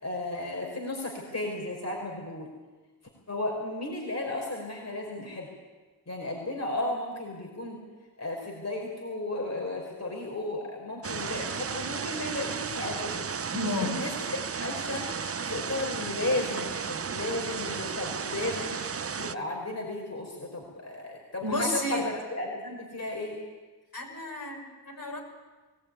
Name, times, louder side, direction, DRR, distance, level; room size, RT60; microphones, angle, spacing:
voice 1, 0.0-2.5 3.3-5.5 6.1-7.8 8.2-13.3 13.8-15.1 15.5-18.8 19.1-23.4, left 2 dB, 40° left, 0 dB, 5.1 m, -34 dB
sound 1, 11.0-19.4, right 6 dB, 35° right, 0.7 m, -34 dB
voice 2, 13.5-14.0 21.4-22.1 23.9-25.2, left 1 dB, 55° left, 0 dB, 6.3 m, -31 dB
20.5 x 17.5 x 9.5 m, 1.3 s
cardioid pair, 60°, 41 cm